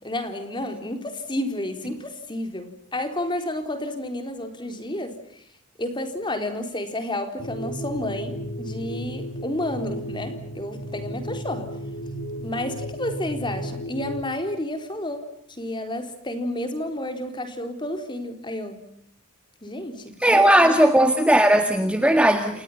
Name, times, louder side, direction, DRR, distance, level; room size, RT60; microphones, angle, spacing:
voice 1, 0.0-5.4 5.8-11.8 12.4-18.9 19.6-20.7, left 1 dB, 20° left, 4.1 m, -31 dB
sound 1, 7.4-14.2, equal, 70° left, 4.1 m, -34 dB
voice 2, 20.2-22.6, right 1 dB, 5° right, 1.7 m, -17 dB
30.0 x 29.0 x 5.7 m
head